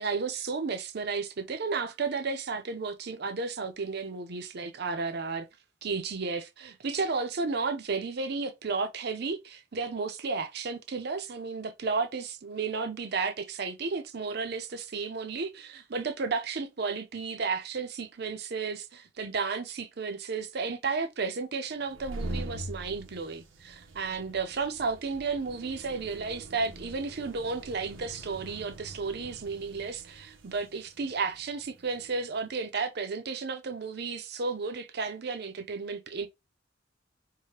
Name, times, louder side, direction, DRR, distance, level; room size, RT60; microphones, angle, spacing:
voice 1, 0.0-5.5 5.8-36.3, right 4 dB, 55° right, 0.6 m, -33 dB
sound 1, 21.8-32.2, right 1 dB, 90° right, 0.8 m, -44 dB
4.7 x 2.2 x 2.8 m
head